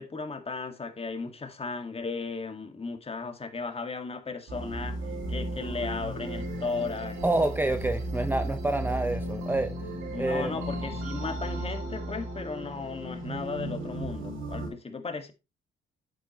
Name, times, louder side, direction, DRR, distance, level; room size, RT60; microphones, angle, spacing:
voice 1, 0.0-5.0 5.3-7.2 10.1-15.3, left 4 dB, 30° left, 2.0 m, -36 dB
sound 1, 4.5-14.7, right 1 dB, 85° right, 6.3 m, -35 dB
voice 2, 7.2-9.7 10.2-10.5, right 2 dB, 10° right, 0.7 m, -27 dB
8.9 x 8.6 x 3.1 m
cardioid pair, 90°, 20 cm